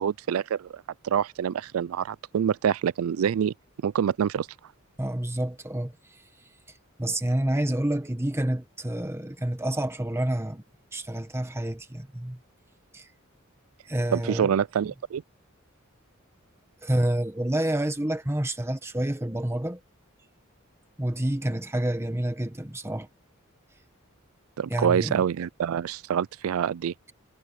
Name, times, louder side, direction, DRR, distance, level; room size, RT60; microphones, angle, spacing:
voice 1, 0.0-3.5 3.8-4.5 14.1-15.2 24.6-26.9, right 8 dB, 80° right, 0.4 m, -26 dB
voice 2, 5.0-6.2 7.0-10.6 10.9-12.4 12.9-13.1 13.9-14.5 16.8-19.8 21.0-23.1 24.7-25.2, right 1 dB, 15° right, 1.3 m, -28 dB
head